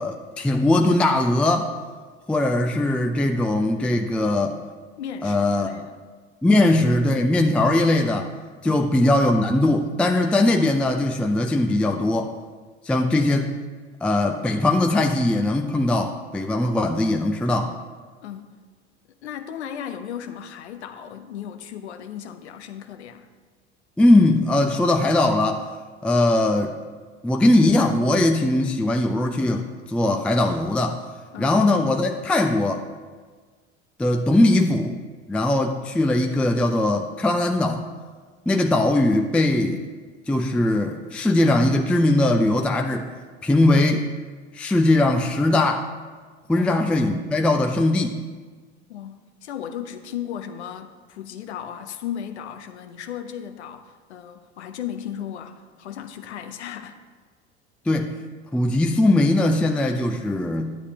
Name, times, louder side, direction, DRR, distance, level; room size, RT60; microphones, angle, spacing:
voice 1, 0.0-1.7 2.3-4.6 5.2-5.8 6.4-8.3 8.6-12.3 12.8-13.6 14.0-17.7 24.0-25.6 26.0-26.7 27.2-31.0 31.4-32.8 34.0-35.0 35.3-37.8 38.5-39.8 40.3-43.1 43.4-44.1 44.5-45.8 46.5-48.2 57.9-58.1 58.5-60.8, left 2 dB, 5° left, 4 dB, 0.4 m, -20 dB
voice 2, 5.0-6.0 6.5-6.6 8.6-9.0 18.2-18.6 19.2-23.3 31.3-31.6 46.6-46.8 48.9-57.0, left 9 dB, 85° left, 8 dB, 0.6 m, -36 dB
10.0 x 8.1 x 2.8 m, 1.5 s
hypercardioid pair, 80°, 33 cm